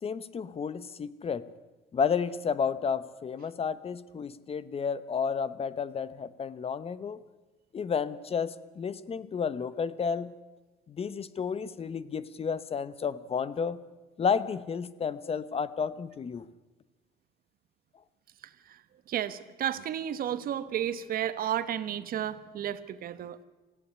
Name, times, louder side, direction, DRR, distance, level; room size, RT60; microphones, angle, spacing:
voice 1, 0.0-1.5 1.9-7.2 7.7-10.3 10.9-13.8 14.2-16.4, left 6 dB, 35° left, 16 dB, 0.9 m, -31 dB
voice 2, 18.4-18.8 19.1-23.4, right 10 dB, 60° right, 13 dB, 1.2 m, -33 dB
19.0 x 15.0 x 9.7 m, 1.2 s
cardioid pair, 110°, 17 cm